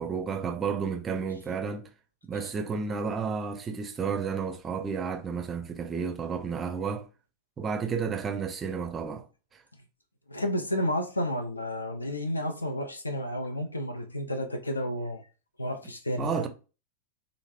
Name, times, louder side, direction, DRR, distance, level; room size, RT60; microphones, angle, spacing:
voice 1, 0.0-1.9 2.2-7.0 7.6-9.2 16.2-16.5, right 5 dB, 20° right, 0.5 m, -31 dB
voice 2, 10.3-15.2 15.6-16.5, left 1 dB, 80° left, 0.4 m, -31 dB
3.1 x 2.5 x 2.4 m
figure-of-eight pair, 90°, 0 cm